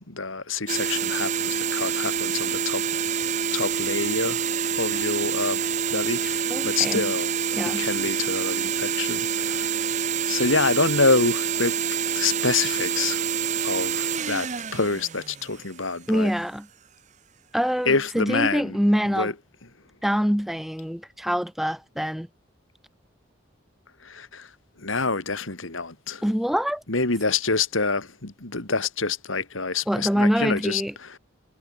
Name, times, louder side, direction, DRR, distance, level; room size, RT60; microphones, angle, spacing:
voice 1, 0.1-2.8 3.5-4.4 4.7-7.3 7.6-9.8 10.3-11.7 12.1-13.3 13.6-16.3 17.9-18.8 19.1-19.3 24.0-24.5 24.8-26.2 26.9-31.2, left 4 dB, 85° left, 2.8 m, -27 dB
sound 1, 0.7-15.9, right 7 dB, 35° right, 0.8 m, -27 dB
voice 2, 6.5-7.1 7.5-7.9 16.1-16.7 17.5-19.3 20.0-22.3 26.2-26.8 29.9-30.9, equal, ahead, 0.7 m, -25 dB
head